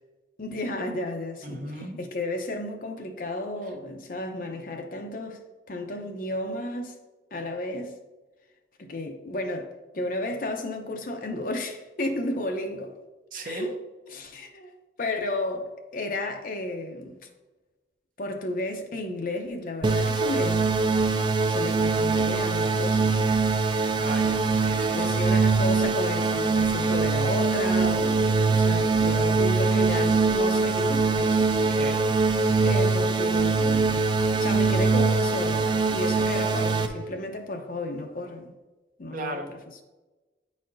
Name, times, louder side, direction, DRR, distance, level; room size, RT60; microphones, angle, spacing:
voice 1, 0.4-5.4 5.7-6.9 7.3-8.0 8.8-13.0 13.4-13.8 14.1-14.7 15.0-17.2 18.2-20.8 21.5-23.2 24.9-31.5 32.6-34.0 34.3-38.5 39.0-39.8, left 1 dB, 50° left, 0.7 m, -33 dB
voice 2, 1.4-2.0 13.3-13.7 24.0-25.1 31.7-32.0 39.1-39.5, right 1 dB, 50° right, 0.8 m, -36 dB
sound 1, 19.8-36.9, right 4 dB, 25° right, 0.4 m, -23 dB
9.4 x 4.2 x 2.6 m
head